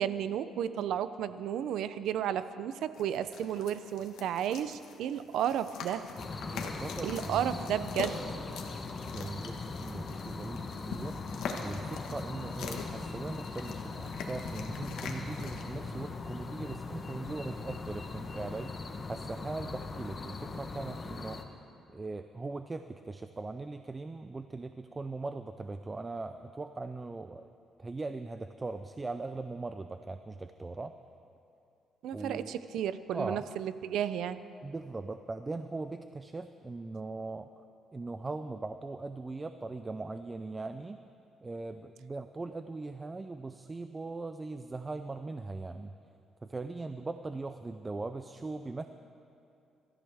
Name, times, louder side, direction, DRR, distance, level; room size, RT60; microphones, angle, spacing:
voice 1, 0.0-6.0 7.0-8.2 32.0-34.4, right 10 dB, 75° right, 13 dB, 0.5 m, -33 dB
sound 1, 2.9-15.6, left 5 dB, 80° left, 1.4 m, -43 dB
sound 2, 6.2-21.4, left 3 dB, 30° left, 1.0 m, -40 dB
voice 2, 6.5-7.5 9.1-11.2 11.6-21.5 21.9-27.5 27.8-30.9 32.1-32.5 33.1-33.5 34.6-37.6 37.9-41.0 41.4-45.9 46.4-48.9, right 3 dB, 20° right, 9 dB, 0.4 m, -40 dB
24.0 x 14.0 x 3.5 m, 2.7 s
cardioid pair, 130°, 0 cm